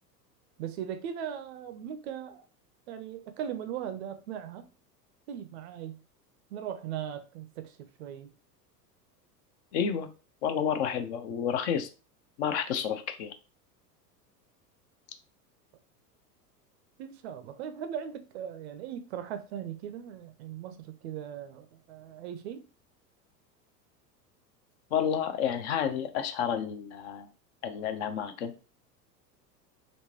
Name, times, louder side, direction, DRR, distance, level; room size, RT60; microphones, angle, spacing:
voice 1, 0.6-2.5 2.9-4.7 5.3-6.0 6.5-8.3 17.0-22.7, right 9 dB, 45° right, 0.4 m, -39 dB
voice 2, 9.7-10.1 10.4-11.9 12.4-13.3 24.9-27.3 27.6-28.6, left 8 dB, 45° left, 0.5 m, -30 dB
3.5 x 2.5 x 3.0 m
figure-of-eight pair, 85°, 49 cm